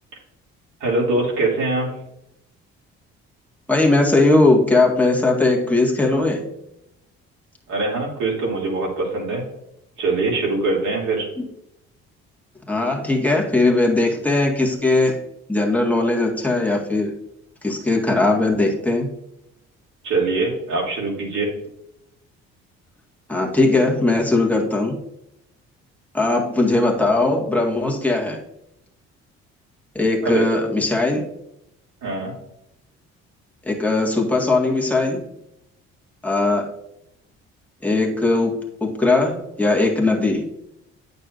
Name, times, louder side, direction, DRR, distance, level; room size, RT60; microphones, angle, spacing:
voice 1, 0.8-1.9 7.7-9.4 10.0-11.3 20.0-21.5 30.2-30.4 32.0-32.3, right 3 dB, 70° right, -3 dB, 3.0 m, -22 dB
voice 2, 3.7-6.4 12.7-15.2 15.5-17.1 17.6-19.1 23.3-25.0 26.1-28.4 30.0-31.3 33.7-35.2 36.2-36.7 37.8-40.5, left 2 dB, 5° left, -1 dB, 1.8 m, -19 dB
8.9 x 6.7 x 2.6 m, 0.82 s
supercardioid pair, 65°, 30 cm